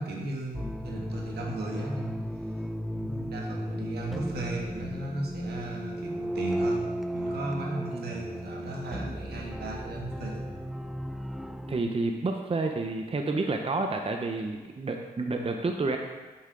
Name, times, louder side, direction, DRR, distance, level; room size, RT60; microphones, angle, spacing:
voice 1, 0.0-2.2 2.9-10.5, right 2 dB, 80° right, 0 dB, 1.4 m, -36 dB
sound 1, 0.5-11.8, equal, ahead, 0.5 m, -34 dB
voice 2, 11.7-16.0, right 3 dB, 35° right, 4 dB, 0.8 m, -29 dB
8.5 x 6.2 x 3.9 m, 1.3 s
cardioid pair, 50°, 16 cm